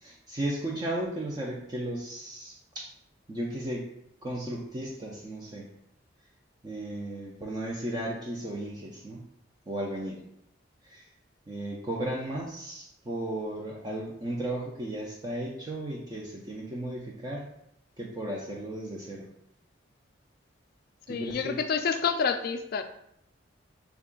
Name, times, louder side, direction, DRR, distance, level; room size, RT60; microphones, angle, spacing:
voice 1, 0.0-2.9 3.3-3.9 4.2-5.7 6.6-9.2 9.7-10.2 10.8-11.1 11.5-17.5 18.0-19.3 21.1-21.6, right 1 dB, 20° right, -2 dB, 0.4 m, -35 dB
voice 2, 21.1-22.8, left 6 dB, 50° left, 8 dB, 0.3 m, -28 dB
3.5 x 2.3 x 3.7 m, 0.75 s
head